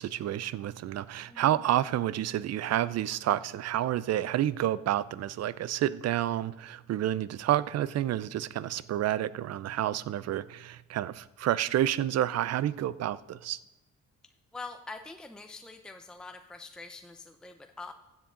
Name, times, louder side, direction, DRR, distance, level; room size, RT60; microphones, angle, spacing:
voice 1, 0.0-13.6, right 12 dB, 60° right, 18 dB, 0.5 m, -29 dB
voice 2, 1.3-1.6 14.5-17.9, left 3 dB, 5° left, 6 dB, 0.6 m, -44 dB
15.0 x 7.4 x 3.8 m, 1.0 s
cardioid pair, 90°, 30 cm